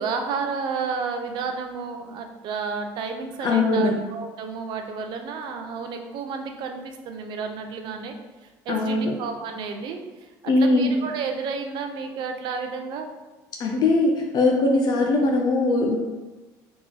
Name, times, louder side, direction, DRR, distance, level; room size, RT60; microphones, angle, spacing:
voice 1, 0.0-8.1 8.4-10.3 10.6-13.1, right 5 dB, 65° right, 5 dB, 0.6 m, -31 dB
voice 2, 3.4-3.9 8.7-9.2 10.5-10.9 13.6-16.0, left 2 dB, 55° left, 1 dB, 0.6 m, -20 dB
3.8 x 2.9 x 3.8 m, 1.2 s
supercardioid pair, 105°, 9 cm